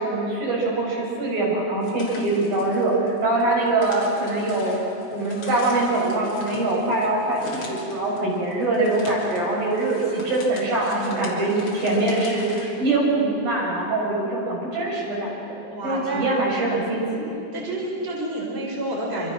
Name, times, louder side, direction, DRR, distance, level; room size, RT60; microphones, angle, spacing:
voice 1, 0.0-4.8 5.1-15.6 15.8-17.3, right 2 dB, 60° right, -4 dB, 7.9 m, -23 dB
sound 1, 1.8-12.7, left 2 dB, 40° left, 4.2 m, -41 dB
voice 2, 10.9-11.4 15.7-16.3 17.5-19.3, right 1 dB, 15° right, -2 dB, 4.3 m, -29 dB
27.5 x 25.5 x 6.3 m, 2.9 s
omnidirectional pair, 4.6 m